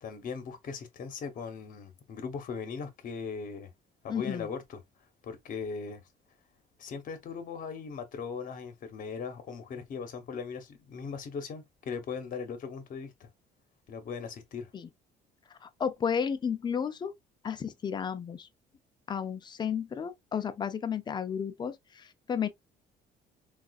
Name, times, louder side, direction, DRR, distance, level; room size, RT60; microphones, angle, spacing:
voice 1, 0.0-3.7 4.0-4.8 5.2-6.0 6.8-13.3 13.9-14.7, left 5 dB, 50° left, 1.0 m, -39 dB
voice 2, 4.1-4.5 14.7-14.9 15.6-17.1 17.4-18.5 19.1-22.5, left 7 dB, 25° left, 0.5 m, -32 dB
3.7 x 2.4 x 2.3 m
cardioid pair, 110°, 17 cm